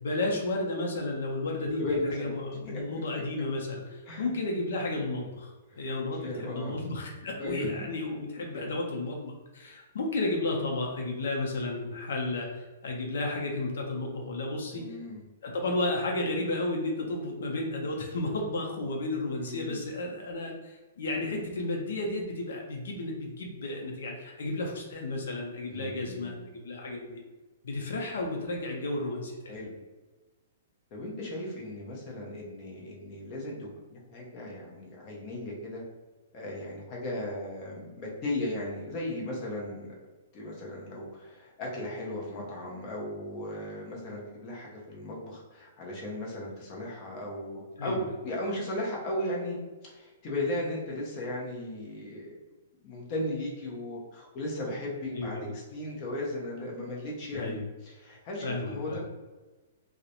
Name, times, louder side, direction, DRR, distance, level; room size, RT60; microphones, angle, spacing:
voice 1, 0.0-1.9 2.1-14.8 15.4-27.2 27.6-29.6 47.8-48.2 55.2-55.5 57.3-57.6 58.4-59.0, left 2 dB, 75° left, 0 dB, 0.5 m, -33 dB
voice 2, 1.6-2.4 2.7-2.8 4.1-4.3 5.7-6.8 7.4-7.7 8.3-8.8 14.7-15.2 19.4-19.8 25.7-26.4 29.5-29.8 30.9-35.8 36.3-40.0 40.3-52.4 52.8-59.0, left 1 dB, 30° left, -3 dB, 0.6 m, -36 dB
2.4 x 2.0 x 2.8 m, 1.2 s
hypercardioid pair, 165°, 0 cm